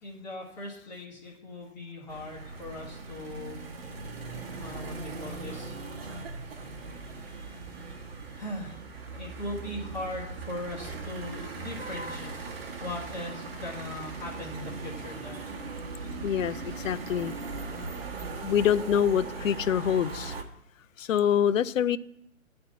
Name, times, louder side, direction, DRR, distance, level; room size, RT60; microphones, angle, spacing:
voice 1, 0.0-3.6 4.6-5.7 8.4-8.8 9.1-15.4, left 1 dB, 30° left, 1.6 m, -39 dB
sound 1, 2.1-20.4, right 3 dB, 45° right, 1.3 m, -39 dB
voice 2, 16.2-16.6 16.8-17.3 18.4-20.3 21.0-22.0, left 9 dB, 70° left, 0.5 m, -25 dB
9.5 x 4.3 x 7.0 m
hypercardioid pair, 170°, 41 cm